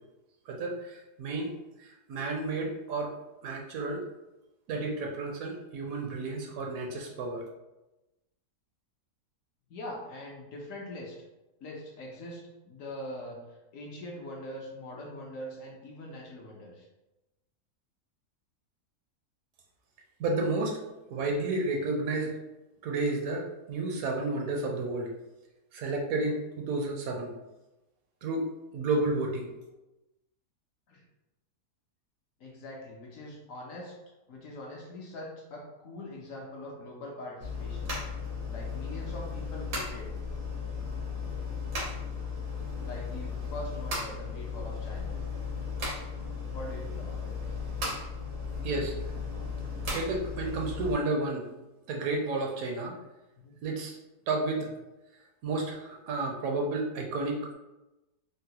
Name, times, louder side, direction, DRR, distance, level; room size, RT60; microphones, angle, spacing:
voice 1, 0.5-3.2 3.4-4.0 4.7-7.5 20.2-20.8 21.1-22.4 22.8-25.1 25.7-27.3 28.2-28.5 28.7-29.5 48.6-49.1 49.9-51.5 51.9-52.9 53.6-54.0 54.3-54.7 55.4-57.5, right 2 dB, 70° right, 0 dB, 0.9 m, -31 dB
voice 2, 9.7-11.2 11.6-16.9 30.9-31.0 32.4-34.0 34.3-37.9 38.5-40.1 42.8-45.1 46.5-47.3 53.4-53.6, left 1 dB, 65° left, -2 dB, 0.9 m, -42 dB
sound 1, 37.4-50.9, left 4 dB, 90° right, 1.5 m, -35 dB
3.8 x 2.1 x 2.7 m, 1.0 s
omnidirectional pair, 1.7 m